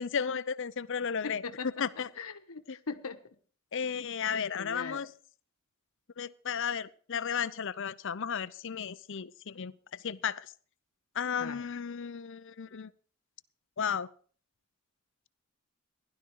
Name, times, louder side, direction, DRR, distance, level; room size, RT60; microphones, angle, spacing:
voice 1, 0.0-1.4 1.8-2.1 2.7-2.8 3.7-5.1 6.2-10.5 11.1-12.9 13.8-14.1, left 7 dB, 60° left, 17 dB, 0.6 m, -34 dB
voice 2, 1.2-3.2 4.5-5.0 11.4-11.6, left 4 dB, 85° left, 9 dB, 1.2 m, -40 dB
16.0 x 11.5 x 4.6 m, 0.42 s
head